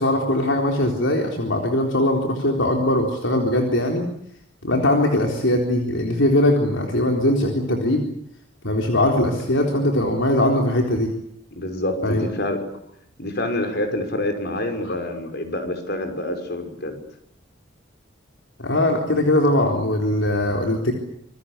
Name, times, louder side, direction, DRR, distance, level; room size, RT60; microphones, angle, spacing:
voice 1, 0.0-4.1 4.6-8.0 8.6-11.1 12.0-12.2 14.8-14.9 18.6-20.9, left 1 dB, 75° left, 2 dB, 4.0 m, -20 dB
voice 2, 11.6-12.6 13.2-16.9, left 1 dB, 55° left, 6 dB, 6.0 m, -27 dB
27.0 x 23.0 x 8.3 m, 0.69 s
head